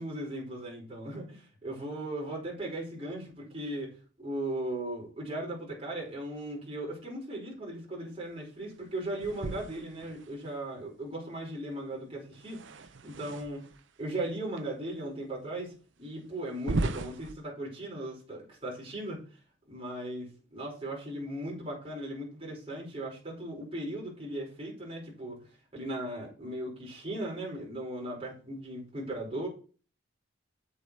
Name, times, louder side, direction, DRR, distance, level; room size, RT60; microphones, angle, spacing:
voice 1, 0.0-3.9 4.2-13.6 14.0-15.7 16.0-19.2 19.7-29.5, right 1 dB, 25° right, -3 dB, 5.0 m, -37 dB
sound 1, 9.2-10.6 12.3-13.8 14.6-14.7 15.3-15.4 16.5-17.3, right 2 dB, 65° right, 0.7 m, -36 dB
8.1 x 8.0 x 4.3 m, 0.38 s
head